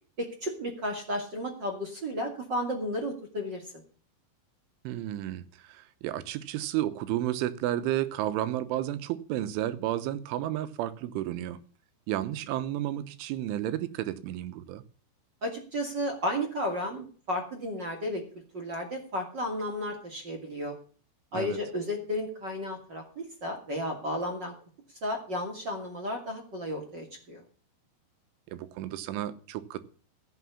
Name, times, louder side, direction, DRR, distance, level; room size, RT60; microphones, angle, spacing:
voice 1, 0.2-3.6 15.4-18.2 18.5-20.7 21.3-24.5 25.0-27.4, equal, 35° right, 2.0 m, -33 dB
voice 2, 4.8-11.6 12.1-14.8 21.3-21.6 28.5-29.8, right 13 dB, 85° right, 3.3 m, -32 dB
15.5 x 6.8 x 7.0 m
omnidirectional pair, 5.7 m